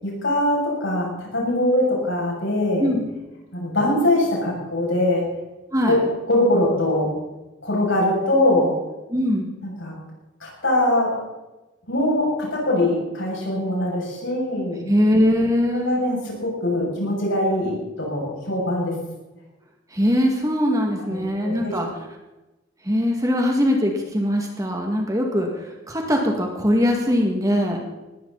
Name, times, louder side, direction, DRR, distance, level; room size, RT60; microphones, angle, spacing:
voice 1, 0.0-2.9 3.5-5.2 5.9-6.0 6.3-7.1 7.6-8.7 9.6-9.9 10.4-11.1 11.9-14.9 15.7-19.0 21.1-21.2 21.4-21.7, left 1 dB, 70° left, -3 dB, 7.6 m, -22 dB
voice 2, 9.1-9.5 14.9-16.1 19.9-21.9 22.8-27.8, equal, 15° right, 1 dB, 2.3 m, -21 dB
19.5 x 15.5 x 4.3 m, 1.1 s
head